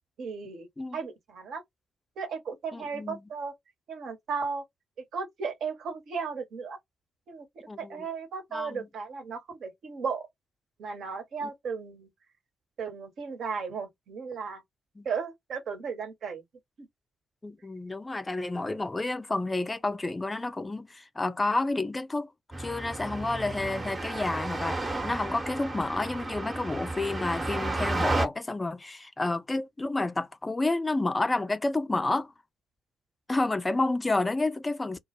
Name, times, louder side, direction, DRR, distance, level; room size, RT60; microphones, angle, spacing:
voice 1, 0.2-0.7 0.9-1.6 2.2-3.5 3.9-4.6 5.1-6.8 7.3-7.5 7.8-10.3 10.8-12.1 12.8-14.6 15.0-16.4 16.8-16.9, right 5 dB, 55° right, 0.8 m, -35 dB
voice 2, 2.7-3.2 7.7-8.0 8.5-8.9 15.0-15.1 17.4-22.3 22.6-32.3 33.3-35.0, left 2 dB, 20° left, 0.4 m, -30 dB
sound 1, 22.5-28.3, right 2 dB, 25° right, 0.8 m, -32 dB
2.1 x 2.1 x 2.9 m
figure-of-eight pair, 40°, 0 cm